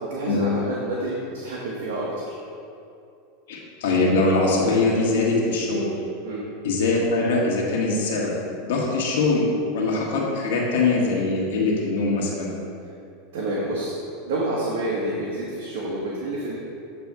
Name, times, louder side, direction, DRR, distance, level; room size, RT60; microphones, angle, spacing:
voice 1, 0.0-2.4 6.2-6.4 13.3-13.9 14.2-16.6, right 1 dB, 70° right, -5 dB, 1.2 m, -28 dB
voice 2, 3.5-5.9 6.6-8.3 8.6-9.5 9.7-12.5, left 3 dB, 75° left, -3 dB, 1.3 m, -22 dB
8.6 x 3.4 x 4.7 m, 2.6 s
hypercardioid pair, 110°, 0 cm